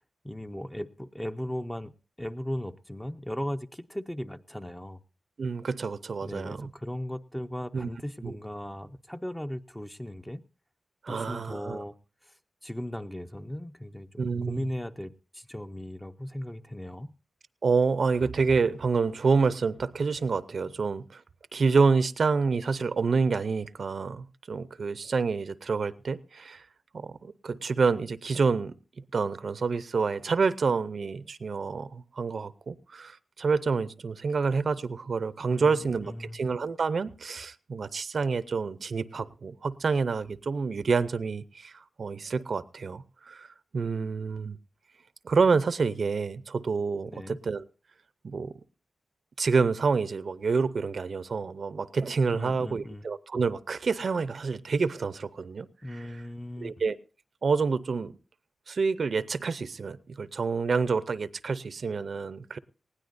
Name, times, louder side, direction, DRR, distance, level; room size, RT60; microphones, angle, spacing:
voice 1, 0.2-1.9 2.2-5.0 6.2-10.4 11.1-11.9 12.2-12.3 12.6-17.1 35.5-36.4 47.0-47.4 52.3-53.1 55.8-56.7, left 1 dB, 5° left, 0.6 m, -37 dB
voice 2, 5.4-6.7 7.7-7.9 8.2-8.4 11.0-11.8 14.2-14.7 17.6-21.2 21.5-26.7 26.9-28.7 29.1-43.5 43.7-44.6 45.2-47.6 48.2-48.5 49.4-55.7 56.0-56.1 56.6-57.0 57.4-58.1 58.7-62.6, right 4 dB, 60° right, 0.6 m, -28 dB
19.5 x 16.5 x 2.6 m
wide cardioid pair, 125°, 0 cm